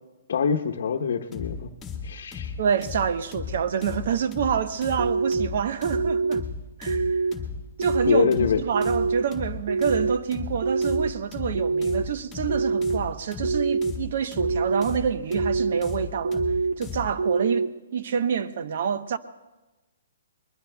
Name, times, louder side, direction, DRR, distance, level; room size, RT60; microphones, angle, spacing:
voice 1, 0.3-1.7 2.0-2.5 8.0-8.6, left 7 dB, 65° left, 0.9 m, -24 dB
sound 1, 1.3-17.2, left 5 dB, 10° left, 1.7 m, -36 dB
voice 2, 2.6-6.4 6.8-7.2 7.8-16.4 16.8-19.2, right 7 dB, 55° right, 0.9 m, -27 dB
sound 2, 5.0-5.5 5.9-6.4 6.9-7.3 7.8-8.3 8.7-9.2 9.7-10.2 10.6-11.1 11.5-12.0 12.5-13.0 13.4-13.9 14.4-14.8 15.3-15.8 16.2-16.7 17.2-17.7, right 4 dB, 75° right, 2.2 m, -25 dB
23.5 x 21.5 x 2.3 m
hypercardioid pair, 155°, 0 cm